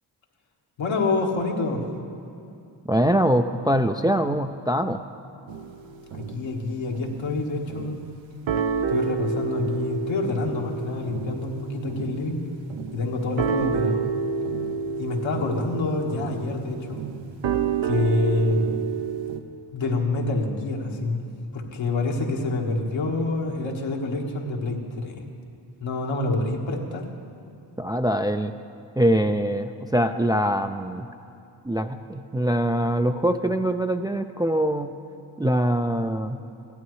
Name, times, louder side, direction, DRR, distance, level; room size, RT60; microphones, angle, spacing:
voice 1, 0.8-1.8 6.1-8.0 8.9-12.4 12.9-14.0 15.0-17.0 17.8-18.6 19.7-21.2 21.5-25.2 25.8-27.1, left 3 dB, 75° left, 0 dB, 1.5 m, -27 dB
voice 2, 2.9-5.0 27.8-28.5 29.0-31.1 31.7-34.9 35.4-36.4, right 1 dB, 10° right, 7 dB, 0.3 m, -23 dB
sound 1, 5.5-6.6 6.9-7.3 7.7-8.2 8.5-19.4, right 6 dB, 75° right, 0.8 m, -29 dB
15.5 x 11.5 x 3.1 m, 2.6 s
supercardioid pair, 50°, 46 cm